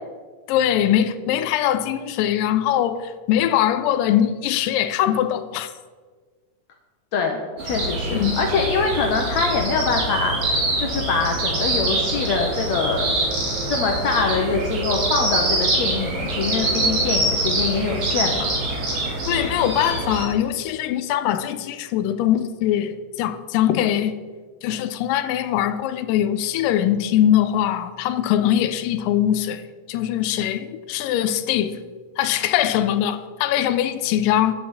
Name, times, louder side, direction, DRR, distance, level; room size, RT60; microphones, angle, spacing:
voice 1, 0.5-5.7 8.1-8.4 19.3-24.2 24.6-29.6 29.9-31.8 32.2-34.5, left 11 dB, 85° left, 2.3 m, -22 dB
voice 2, 7.1-13.1 13.7-18.5, left 4 dB, 70° left, 1.9 m, -24 dB
sound 1, 7.6-20.3, right 2 dB, 65° right, 3.7 m, -24 dB
9.9 x 5.9 x 7.1 m
omnidirectional pair, 3.8 m